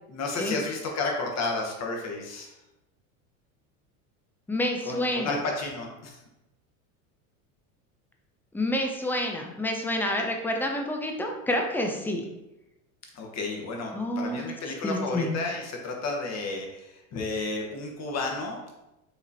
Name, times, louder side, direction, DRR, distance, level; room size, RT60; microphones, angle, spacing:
voice 1, 0.1-2.6 4.8-6.2 13.1-18.7, left 3 dB, 35° left, 1 dB, 1.1 m, -32 dB
voice 2, 4.5-5.3 8.5-12.3 13.9-14.5 14.8-15.3, left 1 dB, 5° left, 2 dB, 0.3 m, -28 dB
5.0 x 3.0 x 2.7 m, 0.95 s
hypercardioid pair, 95°, 44 cm